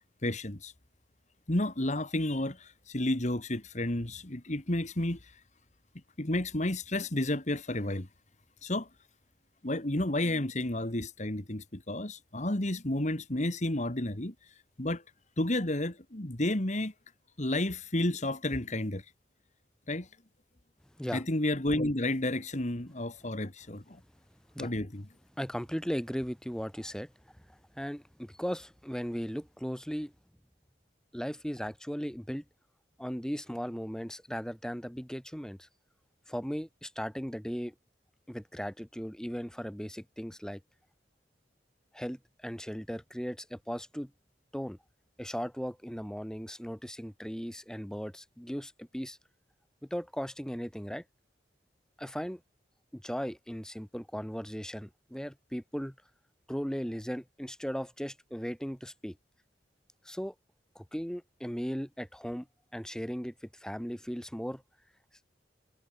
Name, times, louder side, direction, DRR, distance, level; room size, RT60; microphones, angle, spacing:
voice 1, 0.2-0.7 1.5-5.2 6.2-8.1 8.6-8.9 9.6-14.3 14.8-15.0 15.4-16.9 17.4-19.0 19.9-20.1 21.1-24.0 24.6-25.1, left 1 dB, 40° left, 2.1 m, -31 dB
voice 2, 25.4-27.1 27.8-30.1 31.1-32.4 33.0-35.6 36.3-37.7 38.3-40.6 41.9-42.2 42.4-44.1 44.5-44.8 45.2-49.2 49.9-51.0 52.0-52.4 52.9-55.9 56.5-59.1 60.1-60.3 60.8-62.5 62.7-63.3 63.6-64.6, equal, 5° left, 2.3 m, -37 dB
head